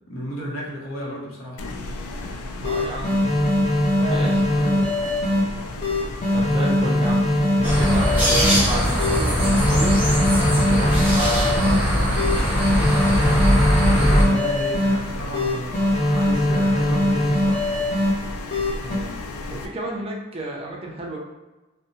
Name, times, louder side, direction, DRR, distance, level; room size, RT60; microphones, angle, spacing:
voice 1, 0.1-1.6 4.0-4.9 14.0-17.7, equal, 65° left, -4 dB, 0.8 m, -32 dB
sound 1, 1.6-19.7, left 2 dB, 85° left, 0.3 m, -34 dB
sound 2, 2.2-2.3 2.6-5.4 5.8-8.6 9.0-11.8 12.2-14.9 15.3-18.1 18.5-19.0, left 1 dB, 30° left, 0.6 m, -21 dB
voice 2, 2.6-3.2 4.1-4.6 6.3-10.0 10.6-12.0 18.8-19.1 19.5-21.2, right 1 dB, 25° right, -2 dB, 0.4 m, -32 dB
sound 3, 7.6-14.2, equal, 10° right, 0.8 m, -20 dB
2.6 x 2.0 x 2.8 m, 1.1 s
head